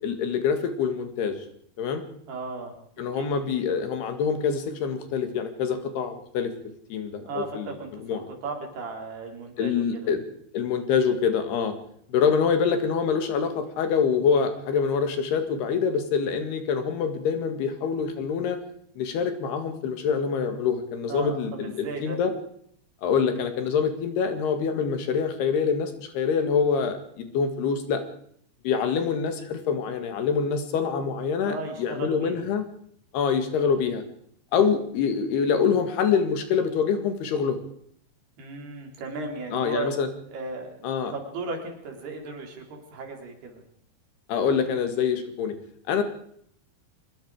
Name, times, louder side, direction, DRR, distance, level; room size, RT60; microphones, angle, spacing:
voice 1, 0.0-1.4 1.8-2.0 3.0-6.5 6.9-8.3 9.6-10.2 10.5-11.7 12.1-18.6 19.0-22.3 23.0-28.0 28.6-32.6 33.1-34.0 34.5-37.6 39.5-40.1 40.8-41.1 44.3-45.5 45.9-46.0, left 6 dB, 80° left, 7 dB, 4.0 m, -25 dB
voice 2, 2.3-2.8 3.1-3.3 7.2-10.1 21.1-22.2 31.4-32.4 38.4-40.0 40.3-43.6, right 3 dB, 85° right, 2 dB, 5.9 m, -36 dB
24.5 x 21.5 x 5.0 m, 0.67 s
omnidirectional pair, 4.5 m